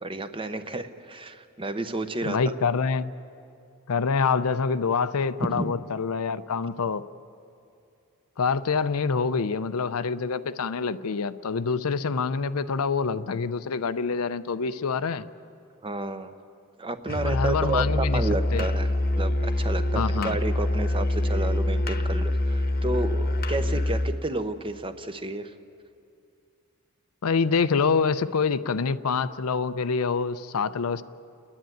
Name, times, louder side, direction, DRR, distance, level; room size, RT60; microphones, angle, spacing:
voice 1, 0.0-2.4 5.5-5.6 15.8-16.3 16.8-18.9 19.2-25.5, right 2 dB, 25° right, 9 dB, 0.8 m, -31 dB
voice 2, 2.2-3.1 3.9-7.1 8.4-15.2 17.2-18.2 18.5-18.6 19.9-20.4 27.2-31.0, left 5 dB, 70° left, 13 dB, 0.6 m, -26 dB
Musical instrument, 17.1-24.2, left 1 dB, 45° left, 1.0 m, -25 dB
30.0 x 10.5 x 9.3 m, 2.5 s
head